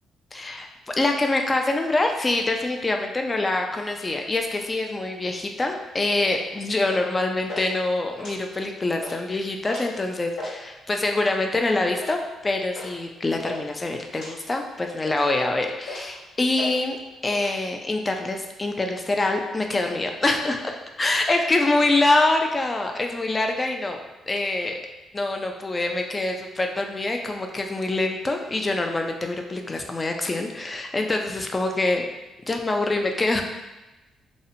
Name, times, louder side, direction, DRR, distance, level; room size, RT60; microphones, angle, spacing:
voice 1, 0.3-17.0 17.2-20.7 21.0-24.0 24.3-24.8 25.1-32.1 32.5-33.4, left 2 dB, 25° left, 3 dB, 0.3 m, -25 dB
sound 1, 6.2-6.4 6.8-7.1 7.5-7.7 8.1-8.7 9.0-9.2 9.7-9.9 10.2-10.6 11.1-11.4 12.0-12.2 12.8-12.9 13.2-13.6 14.1-14.3 14.8-15.4 15.8-16.2 16.6-16.8 17.0-17.5, left 1 dB, 80° left, 1.4 m, -36 dB
2.7 x 2.0 x 2.6 m, 1.1 s
cardioid pair, 90°, 0 cm